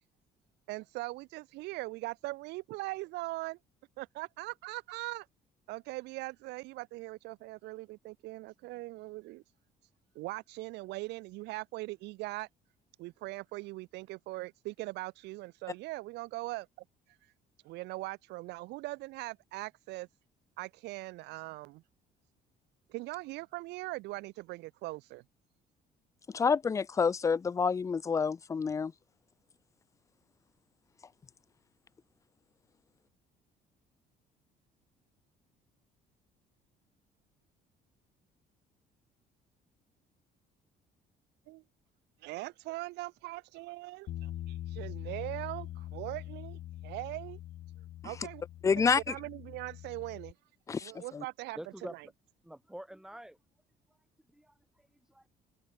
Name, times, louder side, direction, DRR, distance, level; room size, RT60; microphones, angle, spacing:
voice 1, 0.7-3.6 4.0-5.3 5.7-9.4 10.1-12.5 13.0-16.7 17.1-17.3 17.6-20.1 20.6-21.8 22.9-25.2 41.5-41.6 42.2-47.4 48.0-48.4 49.1-50.4 50.8-52.1, right 21 dB, 90° right, 2.2 m, -41 dB
voice 2, 26.3-28.9 48.6-49.0 50.7-51.2, left 5 dB, 20° left, 0.3 m, -28 dB
Bass guitar, 44.1-50.3, left 13 dB, 65° left, 3.0 m, -43 dB
voice 3, 51.6-51.9 52.5-53.4 54.3-54.5 55.1-55.3, right 1 dB, 5° right, 3.0 m, -45 dB
cardioid pair, 110°, 17 cm